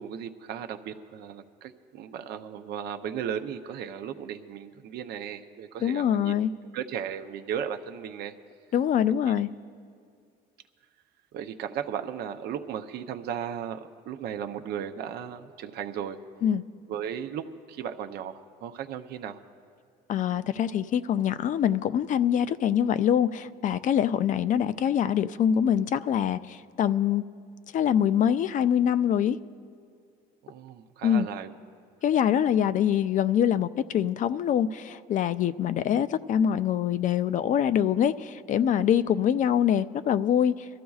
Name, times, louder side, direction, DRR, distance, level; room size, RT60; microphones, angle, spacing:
voice 1, 0.0-6.3 6.7-8.3 9.3-9.4 11.3-16.2 16.9-19.4 30.4-31.5, right 8 dB, 70° right, 7 dB, 0.6 m, -36 dB
voice 2, 5.8-6.5 8.7-9.5 16.4-16.6 20.1-27.2 27.7-29.4 31.0-31.3 32.0-40.7, left 9 dB, 50° left, 13 dB, 0.4 m, -24 dB
24.5 x 13.5 x 2.4 m, 2.2 s
cardioid pair, 110°, 17 cm